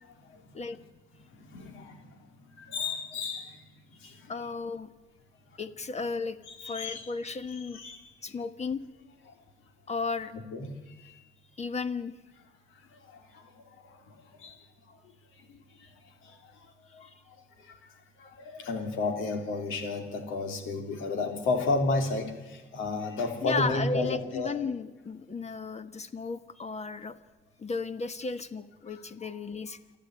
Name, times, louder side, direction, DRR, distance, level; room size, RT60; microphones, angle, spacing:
voice 1, 0.0-0.6 1.2-3.6 4.0-4.3 6.5-7.0 7.7-8.0 10.3-11.2 12.7-14.6 14.9-15.0 15.5-16.7 16.9-17.8 18.2-24.6 28.9-29.3, left 3 dB, 85° left, 5 dB, 3.4 m, -34 dB
voice 2, 4.0-4.9 5.6-6.4 6.6-7.8 8.2-8.8 9.9-10.3 11.6-12.1 23.4-27.2 27.6-29.8, left 4 dB, 35° left, 11 dB, 1.4 m, -34 dB
28.5 x 11.5 x 9.1 m, 1.2 s
cardioid pair, 90°, 20 cm